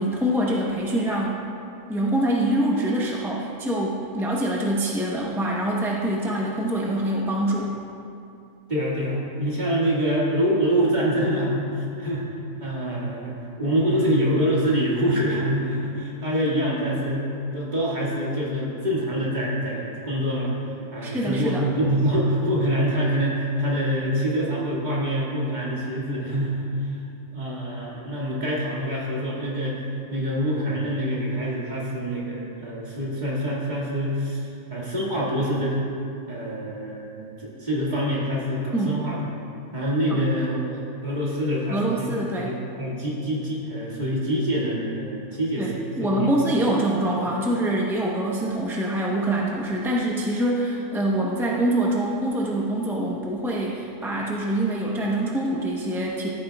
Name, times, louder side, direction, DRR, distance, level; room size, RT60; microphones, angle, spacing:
voice 1, 0.0-1.4 1.9-7.8 21.0-21.7 38.7-39.0 40.1-40.2 41.7-42.6 45.6-56.3, right 1 dB, 5° right, -3 dB, 0.4 m, -25 dB
voice 2, 8.7-12.3 12.6-17.2 17.5-20.5 20.9-26.9 27.3-29.7 30.1-34.4 34.7-35.8 36.3-39.2 39.7-46.4, equal, 30° right, -7 dB, 2.0 m, -25 dB
14.5 x 8.8 x 2.3 m, 2.6 s
omnidirectional pair, 1.6 m